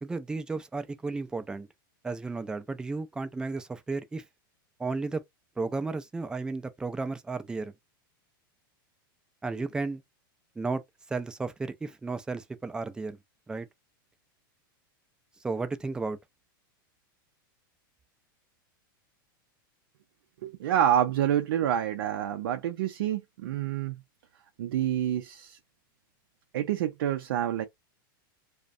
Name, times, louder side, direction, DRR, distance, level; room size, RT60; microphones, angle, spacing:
voice 1, 0.0-1.7 2.0-4.2 4.8-5.2 5.6-7.7 9.4-10.0 10.6-10.8 11.1-13.2 13.5-13.7 15.4-16.2, right 3 dB, 5° right, 0.3 m, -33 dB
voice 2, 20.4-24.0 24.6-25.6 26.5-27.6, right 11 dB, 80° right, 0.4 m, -27 dB
2.4 x 2.1 x 2.5 m
supercardioid pair, 135°, 12 cm